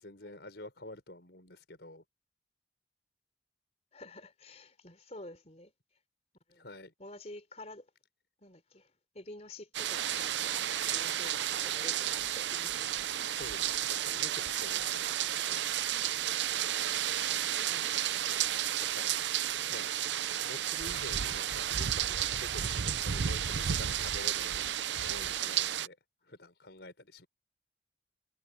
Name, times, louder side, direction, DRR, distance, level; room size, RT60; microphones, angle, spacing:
voice 1, 0.0-2.0 6.5-6.9 13.3-15.7 18.9-19.2 19.7-19.9 20.4-26.0 26.2-27.3, left 2 dB, 70° left, 4.9 m, -48 dB
voice 2, 3.9-5.7 6.5-6.7 7.0-7.9 8.4-13.0 17.7-18.2, left 2 dB, 35° left, 4.2 m, -50 dB
sound 1, 9.7-25.9, right 10 dB, 85° right, 0.7 m, -32 dB
head